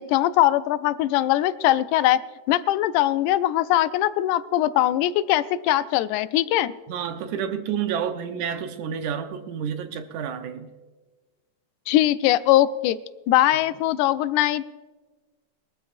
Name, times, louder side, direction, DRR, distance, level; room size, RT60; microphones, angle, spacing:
voice 1, 0.0-2.2 2.5-6.7 11.9-13.0 13.3-14.6, left 13 dB, 90° left, 2.0 m, -21 dB
voice 2, 6.9-10.7, right 8 dB, 80° right, 2.3 m, -29 dB
22.0 x 13.5 x 2.6 m
omnidirectional pair, 3.4 m